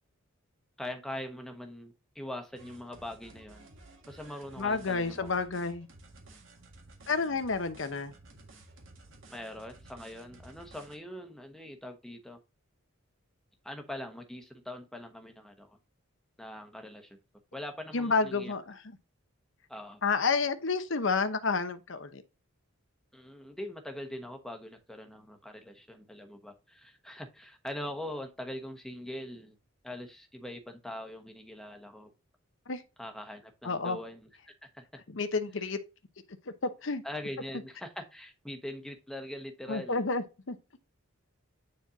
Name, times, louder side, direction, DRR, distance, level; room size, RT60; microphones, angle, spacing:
voice 1, 0.8-3.7 4.1-5.4 9.3-12.4 13.6-15.8 16.4-17.2 17.5-18.5 19.7-20.0 23.1-29.6 29.8-32.1 33.0-34.3 34.6-34.8 37.0-40.1, left 1 dB, ahead, 1.1 m, -42 dB
sound 1, 2.5-11.0, right 2 dB, 65° right, 1.8 m, -54 dB
voice 2, 4.6-5.9 7.1-8.1 17.9-18.8 20.0-22.2 32.7-32.8 33.6-34.0 35.1-35.8 36.5-37.0 39.7-40.6, left 4 dB, 65° left, 0.9 m, -30 dB
9.4 x 4.4 x 2.7 m
head